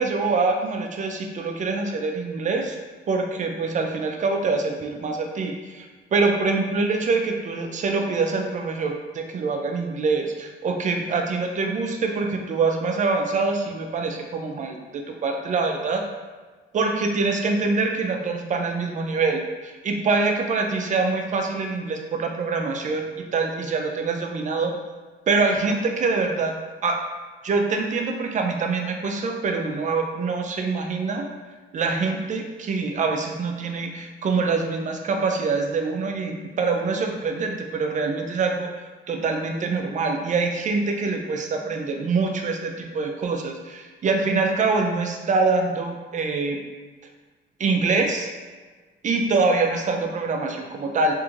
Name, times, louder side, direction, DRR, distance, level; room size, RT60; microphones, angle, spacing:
voice 1, 0.0-2.8 3.1-5.9 6.1-16.0 16.7-23.1 23.3-24.7 25.3-26.5 26.8-27.0 27.4-31.3 31.7-46.6 47.6-48.3 49.0-51.1, right 4 dB, 40° right, 3 dB, 0.4 m, -25 dB
3.0 x 2.6 x 2.4 m, 1.4 s
cardioid pair, 90°, 20 cm